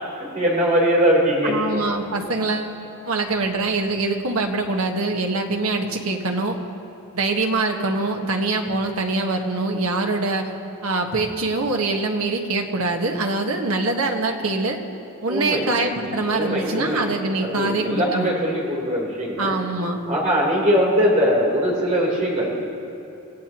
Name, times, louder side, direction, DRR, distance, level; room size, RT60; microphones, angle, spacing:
voice 1, 0.0-1.6 15.3-15.7 16.0-17.0 17.4-19.6 20.1-22.5, equal, 35° right, -4 dB, 3.9 m, -21 dB
voice 2, 1.4-2.7 3.1-6.6 7.1-10.5 10.8-14.8 15.2-18.3 19.4-20.0, right 3 dB, 80° right, 2 dB, 1.5 m, -24 dB
26.5 x 16.0 x 3.0 m, 2.9 s
head